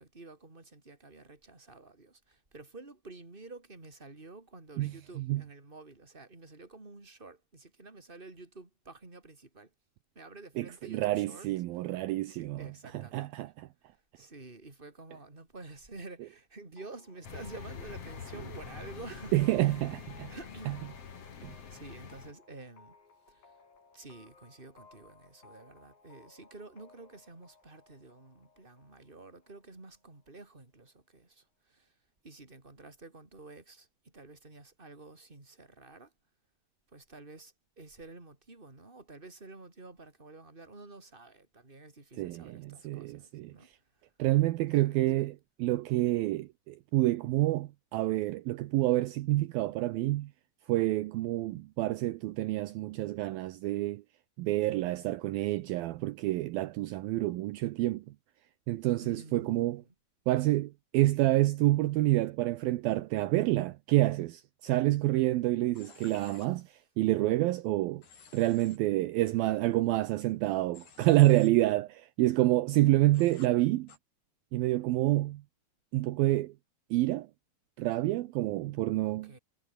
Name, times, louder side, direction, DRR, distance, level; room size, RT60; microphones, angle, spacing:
voice 1, 0.0-9.7 10.1-11.5 12.3-13.5 13.9-19.9 20.3-20.8 21.4-23.0 23.3-23.6 23.9-32.0 32.2-36.1 36.9-43.7 43.9-44.1 44.7-45.3 59.0-59.9 66.0-66.4 79.0-79.4, right 3 dB, 15° right, 3.9 m, -50 dB
voice 2, 4.8-5.4 10.6-12.7 13.1-13.7 19.3-20.3 21.4-21.5 42.2-43.5 44.2-45.3 45.6-50.3 50.7-54.0 54.4-58.0 58.7-59.8 60.3-68.0 68.3-73.9 74.5-75.4 75.9-76.5 76.9-77.3 77.8-79.3, right 17 dB, 75° right, 2.5 m, -28 dB
sound 1, 16.8-30.3, left 4 dB, 60° left, 8.6 m, -61 dB
sound 2, 17.2-22.3, left 6 dB, 40° left, 3.3 m, -45 dB
Human voice / Train, 65.8-66.5 68.0-68.8 70.7-71.5 73.1-73.5 73.9-74.0, left 6 dB, 85° left, 7.1 m, -54 dB
omnidirectional pair, 4.6 m